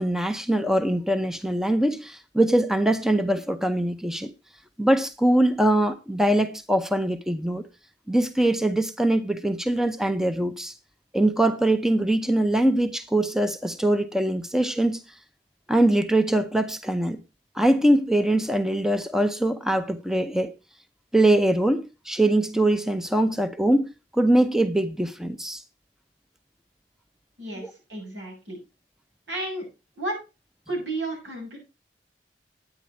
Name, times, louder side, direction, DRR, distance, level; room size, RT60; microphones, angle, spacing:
voice 1, 0.0-4.3 4.8-7.6 8.1-10.7 11.1-15.0 15.7-17.2 17.6-20.5 21.1-25.6, right 1 dB, 5° right, 0.6 m, -22 dB
voice 2, 27.4-28.6 29.3-29.7 30.0-30.2 30.7-31.6, right 2 dB, 85° right, 7.6 m, -32 dB
10.0 x 9.3 x 4.4 m
head